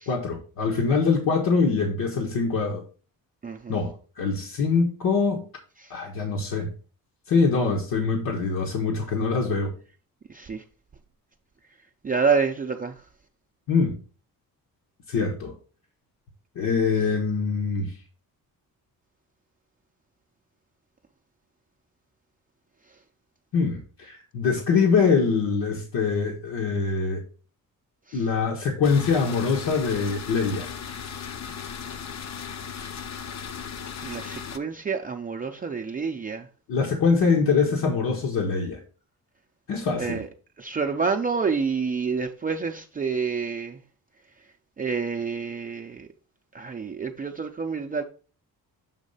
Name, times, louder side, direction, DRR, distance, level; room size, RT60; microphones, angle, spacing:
voice 1, 0.1-2.8 3.7-5.4 5.9-6.7 7.3-9.7 13.7-14.0 15.1-15.5 16.5-17.9 23.5-27.2 28.1-30.7 36.7-38.8 39.7-40.2, left 5 dB, 75° left, 1.3 m, -24 dB
voice 2, 3.4-3.7 10.3-10.6 12.0-12.9 34.0-36.5 40.0-40.3 40.6-43.8 44.8-46.1 46.5-48.0, right 5 dB, 25° right, 0.4 m, -28 dB
sound 1, 28.8-34.6, left 7 dB, 50° left, 0.6 m, -36 dB
7.3 x 3.1 x 5.4 m
cardioid pair, 135°, 35 cm